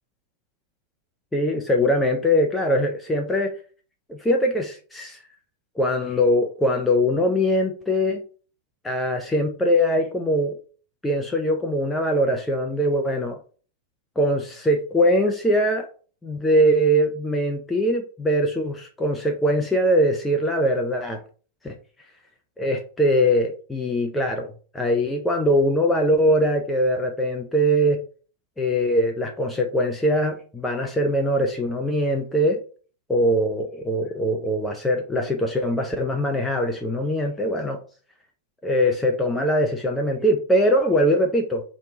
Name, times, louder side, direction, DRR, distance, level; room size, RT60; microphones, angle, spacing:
voice 1, 1.3-3.5 4.1-5.2 5.8-8.2 8.8-10.5 11.0-13.4 14.2-15.9 16.2-21.2 21.6-21.8 22.6-28.0 28.6-32.6 33.1-37.8 38.6-41.6, equal, 10° left, 3 dB, 0.5 m, -22 dB
3.0 x 2.2 x 3.6 m, 0.40 s
figure-of-eight pair, 90°, 0 cm